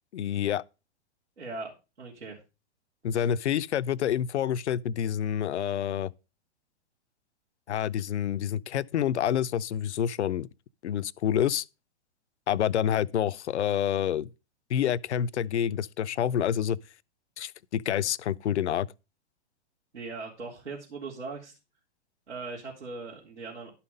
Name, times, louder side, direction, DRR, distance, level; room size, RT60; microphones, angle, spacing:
voice 1, 0.1-0.6 3.0-6.1 7.7-10.5 10.8-11.6 12.5-14.3 14.7-16.8 17.4-18.9, left 10 dB, 80° left, 0.6 m, -28 dB
voice 2, 1.4-1.7 2.0-2.4 3.1-3.2 19.9-21.5 22.3-23.7, right 3 dB, 85° right, 3.4 m, -39 dB
11.5 x 5.7 x 5.2 m
hypercardioid pair, 120°, 34 cm